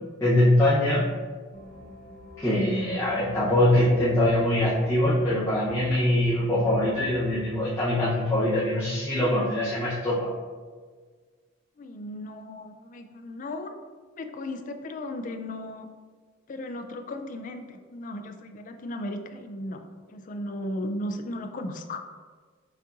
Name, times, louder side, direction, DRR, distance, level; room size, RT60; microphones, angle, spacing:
voice 1, 0.2-1.0 2.4-10.3, left 1 dB, 15° left, -11 dB, 0.8 m, -23 dB
sound 1, 1.5-7.4, left 2 dB, 55° left, 1.5 m, -45 dB
voice 2, 11.8-13.8 14.2-15.9 16.5-19.8 20.1-22.0, left 1 dB, 40° left, 7 dB, 0.3 m, -36 dB
5.9 x 2.7 x 2.5 m, 1.5 s
head